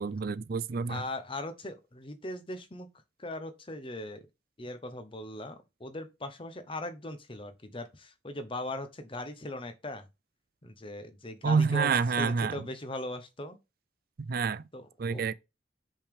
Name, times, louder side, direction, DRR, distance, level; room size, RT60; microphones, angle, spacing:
voice 1, 0.0-1.0 11.4-12.6 14.3-14.6 15.0-15.3, right 5 dB, 55° right, 0.4 m, -28 dB
voice 2, 0.9-2.9 3.2-4.3 4.6-10.0 10.6-11.9 12.2-13.6 14.7-15.3, left 1 dB, 30° left, 0.9 m, -39 dB
5.5 x 4.9 x 3.6 m
head